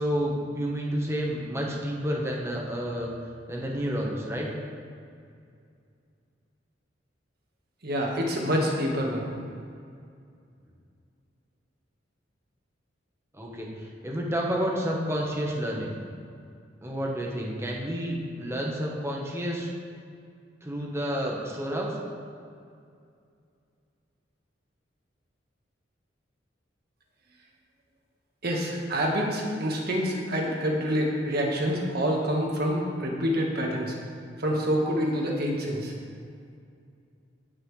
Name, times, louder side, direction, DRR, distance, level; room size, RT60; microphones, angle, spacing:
voice 1, 0.0-3.1 3.5-4.5 13.3-16.0 16.8-19.7 20.6-22.0, equal, 15° right, -2 dB, 1.3 m, -30 dB
voice 2, 7.8-9.2 28.4-33.9 34.4-35.9, equal, 55° right, -1 dB, 1.7 m, -27 dB
17.0 x 6.0 x 3.3 m, 2.4 s
head